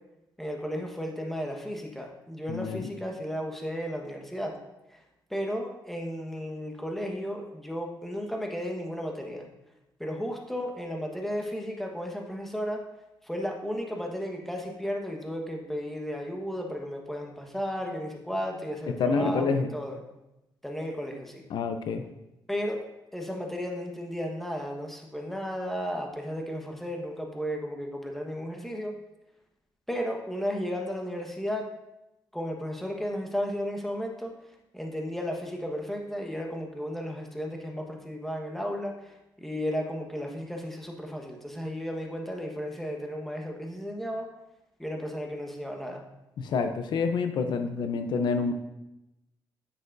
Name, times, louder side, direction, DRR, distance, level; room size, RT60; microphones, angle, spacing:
voice 1, 0.4-4.6 4.9-5.0 5.3-9.4 10.0-12.8 13.2-20.0 20.6-21.5 22.5-22.8 23.1-28.9 29.9-31.6 32.3-34.3 34.7-44.3 44.8-46.0, equal, 5° left, 1 dB, 1.3 m, -34 dB
voice 2, 2.5-2.9 19.0-19.7 21.5-22.0 46.4-48.5, left 4 dB, 70° left, 7 dB, 0.6 m, -27 dB
9.8 x 7.4 x 2.7 m, 0.92 s
cardioid pair, 105°, 8 cm